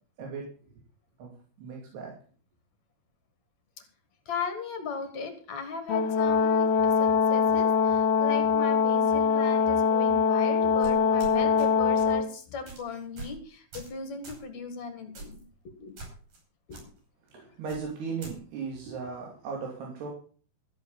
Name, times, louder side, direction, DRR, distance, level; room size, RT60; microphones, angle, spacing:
voice 1, 1.6-2.1 17.3-20.1, right 5 dB, 85° right, -1 dB, 4.7 m, -37 dB
voice 2, 4.3-15.4 15.8-16.0 16.7-16.9 17.3-17.5, left 5 dB, 50° left, 8 dB, 2.6 m, -38 dB
Brass instrument, 5.9-12.3, left 6 dB, 75° left, 2.7 m, -23 dB
sound 1, 10.8-11.7 12.0-12.2 12.7-12.8 13.2-13.4 13.7-14.0 14.2-14.4 15.2-15.4 16.0-16.4 16.7-16.8 17.7-18.3, right 2 dB, 55° right, 7.0 m, -43 dB
14.5 x 7.9 x 7.1 m, 0.43 s
omnidirectional pair, 4.6 m